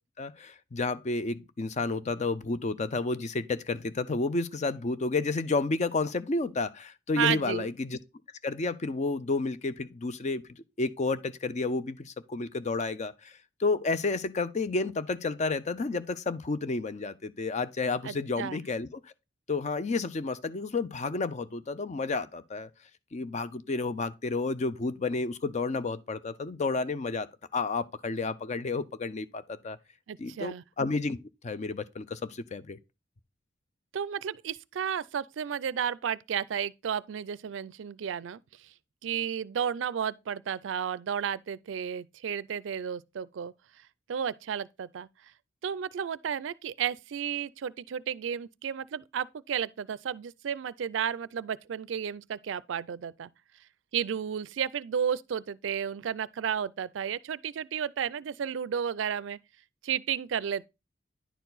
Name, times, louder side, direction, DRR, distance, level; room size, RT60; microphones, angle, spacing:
voice 1, 0.2-8.0 8.4-13.3 13.6-19.0 19.5-22.7 23.1-27.3 27.5-29.8 30.2-31.2 31.4-32.8, left 3 dB, 40° left, 0.5 m, -31 dB
voice 2, 7.2-7.7 18.0-18.6 30.1-30.6 33.9-38.7 39.0-43.5 44.1-45.1 45.6-53.3 53.9-59.4 59.8-60.7, right 8 dB, 80° right, 0.4 m, -32 dB
10.0 x 4.6 x 3.9 m
head